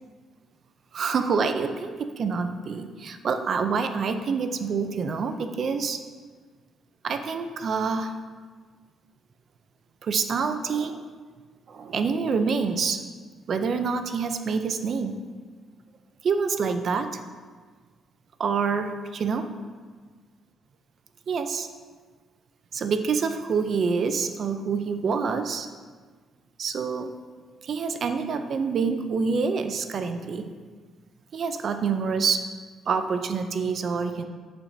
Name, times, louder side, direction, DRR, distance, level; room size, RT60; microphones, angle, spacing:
voice 1, 0.9-6.0 7.0-8.1 10.0-11.0 11.7-13.0 13.5-15.1 16.2-17.2 18.4-19.5 21.3-21.7 22.7-25.7 26.6-27.1 27.6-30.5 31.3-32.5 32.9-34.2, right 5 dB, 55° right, 8 dB, 0.5 m, -27 dB
11.0 x 4.5 x 2.7 m, 1.5 s
cardioid pair, 90°, 0 cm